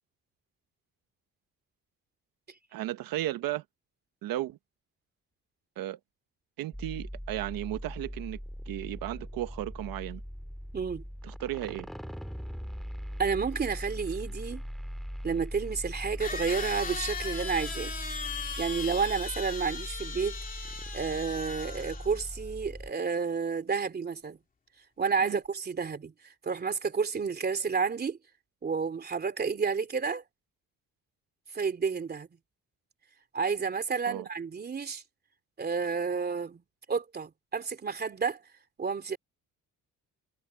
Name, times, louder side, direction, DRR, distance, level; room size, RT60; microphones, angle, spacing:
voice 1, 2.7-3.6 4.2-4.6 5.8-6.0 6.6-8.4 8.7-10.2 11.2-11.9 25.2-25.4 34.1-34.3, right 14 dB, 90° right, 1.4 m, -34 dB
sound 1, 6.7-22.9, equal, ahead, 2.2 m, -40 dB
voice 2, 10.7-11.0 13.2-14.6 15.2-17.9 18.6-20.4 20.9-24.4 25.0-26.1 26.4-28.2 28.6-30.2 31.5-32.3 33.3-35.0 35.6-36.6 36.9-38.4 38.8-39.2, right 5 dB, 30° right, 3.0 m, -30 dB
sound 2, 16.2-22.3, left 5 dB, 25° left, 2.7 m, -38 dB
cardioid pair, 150°, 34 cm